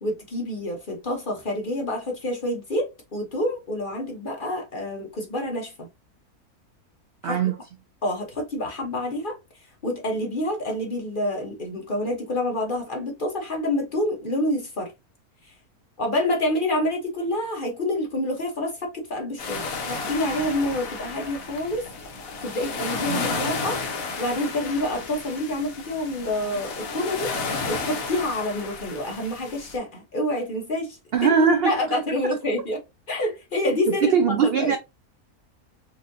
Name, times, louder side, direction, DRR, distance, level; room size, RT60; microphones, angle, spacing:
voice 1, 0.0-5.9 7.2-7.4 8.0-9.4 9.8-14.9 16.0-21.8 22.4-23.8 24.2-27.3 27.7-31.3 31.6-32.8 33.1-34.7, left 1 dB, 40° left, 0.9 m, -27 dB
voice 2, 7.2-7.6 23.1-23.4 31.1-31.7 33.9-34.8, right 6 dB, 80° right, 0.5 m, -21 dB
sound 1, 19.4-29.8, left 4 dB, 65° left, 1.2 m, -32 dB
4.4 x 2.7 x 2.6 m
omnidirectional pair, 1.6 m